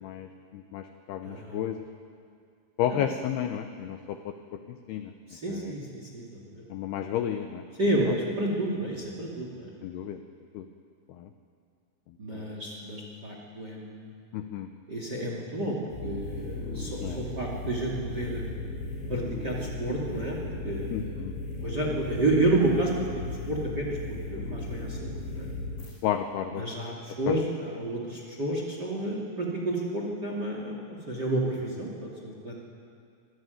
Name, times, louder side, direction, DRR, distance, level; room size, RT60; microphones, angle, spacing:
voice 1, 0.0-1.9 2.8-5.1 5.5-5.7 6.7-7.6 9.8-10.2 10.5-10.7 11.1-11.3 12.1-12.6 14.3-14.7 17.0-17.2 20.9-21.3 26.0-26.6 27.3-27.4, left 10 dB, 80° left, 7 dB, 2.3 m, -32 dB
voice 2, 1.2-1.6 2.9-3.0 5.3-6.6 7.8-9.7 12.2-14.1 14.9-18.4 19.1-21.1 21.6-23.1 23.5-25.5 26.5-32.6, right 1 dB, 30° right, 0 dB, 2.0 m, -30 dB
sound 1, 15.9-25.9, left 2 dB, 65° left, 8.5 m, -36 dB
25.5 x 15.0 x 9.3 m, 2.4 s
omnidirectional pair, 5.6 m